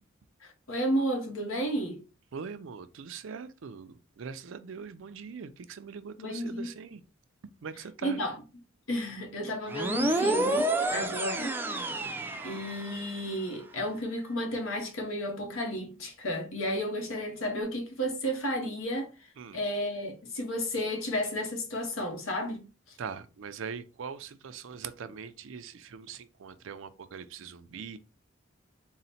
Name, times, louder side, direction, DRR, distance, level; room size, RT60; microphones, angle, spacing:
voice 1, 0.4-2.0 6.2-6.7 8.0-8.4 8.9-11.5 12.4-19.1 19.5-22.6, equal, 85° left, 1.0 m, -32 dB
voice 2, 2.3-7.0 7.4-8.2 11.0-11.2 19.4-19.6 23.0-28.0, right 6 dB, 70° right, 0.4 m, -42 dB
sound 1, 9.7-13.2, right 1 dB, 10° right, 0.4 m, -29 dB
3.9 x 2.1 x 4.1 m
head